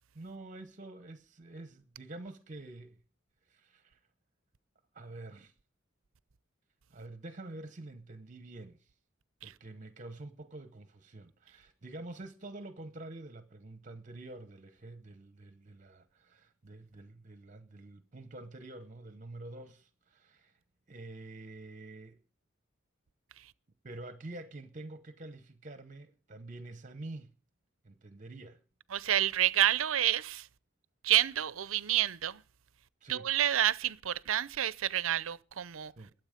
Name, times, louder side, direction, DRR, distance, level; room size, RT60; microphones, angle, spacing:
voice 1, 0.1-3.0 3.5-4.0 4.9-5.5 6.9-8.9 9.4-20.6 20.9-22.2 23.8-27.3 27.8-28.6 33.0-33.3 36.0-36.1, right 2 dB, 40° right, 0.9 m, -47 dB
voice 2, 28.9-30.5 31.0-32.4 33.1-35.9, right 11 dB, 75° right, 0.6 m, -29 dB
22.0 x 8.0 x 5.1 m
head